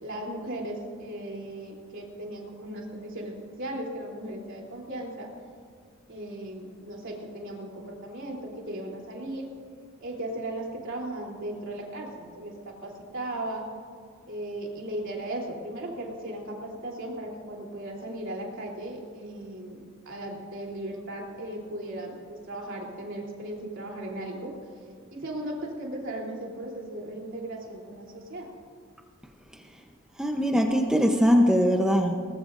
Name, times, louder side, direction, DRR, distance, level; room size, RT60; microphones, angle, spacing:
voice 1, 0.0-5.3 6.1-9.5 10.0-13.7 14.3-24.5 25.1-28.5, right 1 dB, 60° right, -1 dB, 3.2 m, -37 dB
voice 2, 30.2-32.1, equal, 5° right, 2 dB, 0.7 m, -21 dB
21.5 x 20.0 x 2.6 m, 2.1 s
head